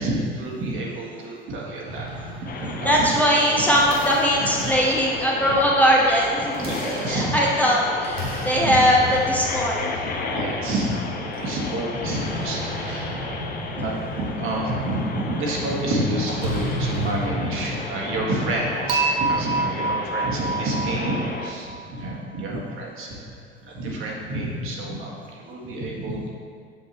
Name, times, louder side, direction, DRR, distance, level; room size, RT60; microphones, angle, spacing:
voice 1, 0.0-2.1 2.5-3.2 4.4-4.7 6.6-7.7 8.2-8.3 8.6-8.8 9.1-9.2 9.9-23.3 23.6-26.3, right 1 dB, 45° right, -3 dB, 1.8 m, -29 dB
sound 1, 1.9-17.3, equal, 90° right, 1.7 m, -34 dB
sound 2, 2.5-21.5, left 3 dB, 30° left, 0.8 m, -34 dB
voice 2, 2.8-6.7 7.1-9.9, equal, 5° left, -4 dB, 1.0 m, -20 dB
Dishes pots and pans / Chink clink, 18.9-22.0, right 3 dB, 70° right, 1.0 m, -26 dB
8.2 x 7.1 x 3.0 m, 2.1 s
figure-of-eight pair, 65°, 30 cm